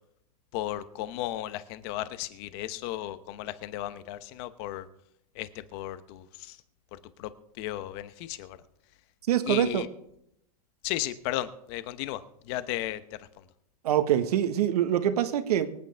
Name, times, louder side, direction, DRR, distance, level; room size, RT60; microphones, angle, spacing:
voice 1, 0.5-4.9 5.3-6.6 6.9-7.3 7.6-8.6 9.5-9.9 10.8-13.4, left 14 dB, 40° left, 13 dB, 0.9 m, -35 dB
voice 2, 9.3-9.8 13.8-15.7, right 11 dB, 75° right, 10 dB, 1.4 m, -24 dB
24.5 x 9.2 x 3.4 m, 0.78 s
supercardioid pair, 150°, 20 cm